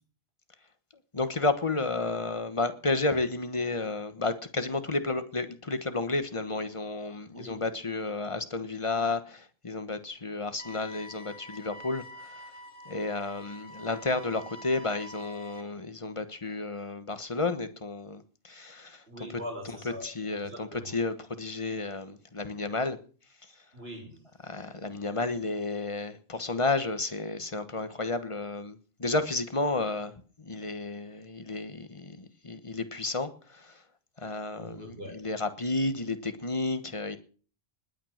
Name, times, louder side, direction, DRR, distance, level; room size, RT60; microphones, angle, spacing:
voice 1, 1.1-12.4 12.9-19.4 20.0-23.0 24.4-30.1 30.4-33.7 34.2-37.2, left 3 dB, 30° left, 1.3 m, -32 dB
voice 2, 7.3-7.6 19.1-20.9 23.7-24.2 34.5-35.2, equal, 70° right, 5.8 m, -42 dB
sound 1, 10.6-15.6, equal, 55° left, 2.8 m, -47 dB
20.0 x 9.1 x 6.5 m
omnidirectional pair, 1.1 m